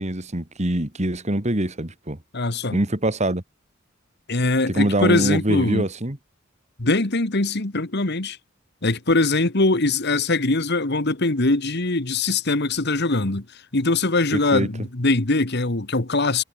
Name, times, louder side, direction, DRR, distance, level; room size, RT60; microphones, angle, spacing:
voice 1, 0.0-2.2 2.7-3.4 4.7-6.2 14.3-14.7, right 1 dB, 35° right, 2.4 m, -24 dB
voice 2, 2.3-2.8 4.3-5.8 6.8-8.4 8.8-13.5 13.7-16.4, left 2 dB, 55° left, 1.8 m, -22 dB
head